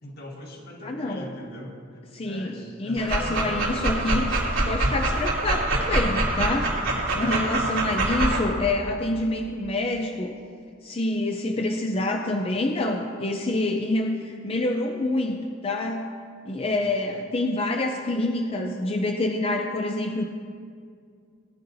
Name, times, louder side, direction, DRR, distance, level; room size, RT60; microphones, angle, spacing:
voice 1, 0.0-1.7 2.2-4.3 7.1-7.4 16.6-16.8, left 1 dB, 55° left, -1 dB, 1.8 m, -40 dB
voice 2, 0.8-1.3 2.1-4.3 4.7-10.3 10.8-16.1 16.4-20.2, left 2 dB, 30° left, 3 dB, 0.5 m, -27 dB
Dog, 3.0-8.4, right 2 dB, 80° right, 3.1 m, -25 dB
19.0 x 10.5 x 2.7 m, 2.3 s
head